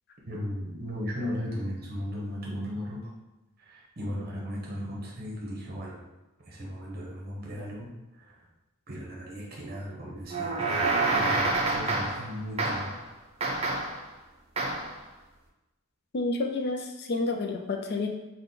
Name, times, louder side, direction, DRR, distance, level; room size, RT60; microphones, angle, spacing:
voice 1, 0.3-3.1 3.6-6.0 6.4-7.9 8.2-8.5 8.9-10.8 11.1-12.9, equal, 45° right, -3 dB, 0.9 m, -36 dB
sound 1, 10.3-12.3 12.6-13.0 13.4-14.0 14.6-14.9, right 2 dB, 30° right, 0.5 m, -27 dB
voice 2, 16.1-18.1, left 3 dB, 50° left, 3 dB, 0.4 m, -29 dB
3.7 x 2.2 x 3.9 m, 1.1 s
head